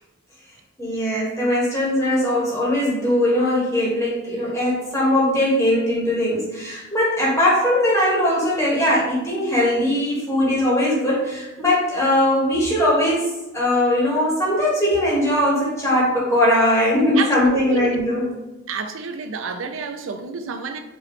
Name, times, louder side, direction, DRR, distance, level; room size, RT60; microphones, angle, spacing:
voice 1, 0.8-18.4, left 1 dB, 15° left, 1.6 m, -20 dB
voice 2, 17.2-18.0 18.7-20.8, right 5 dB, 90° right, 0.4 m, -29 dB
5.3 x 3.0 x 3.2 m
head